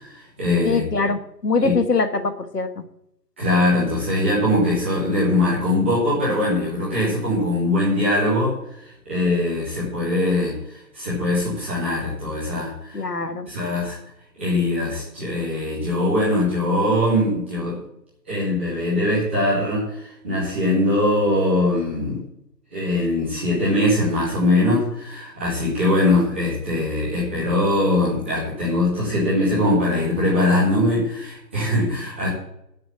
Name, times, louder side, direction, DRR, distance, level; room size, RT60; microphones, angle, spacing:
voice 1, 0.0-0.8 1.6-1.7 3.4-13.0 13.5-14.0 14.4-17.8 18.3-22.2 22.7-32.3, left 1 dB, 5° right, -12 dB, 2.3 m, -21 dB
voice 2, 0.6-2.8 12.9-13.5, left 4 dB, 70° left, 9 dB, 1.6 m, -23 dB
9.8 x 7.8 x 7.4 m, 0.79 s
figure-of-eight pair, 170°, 50 cm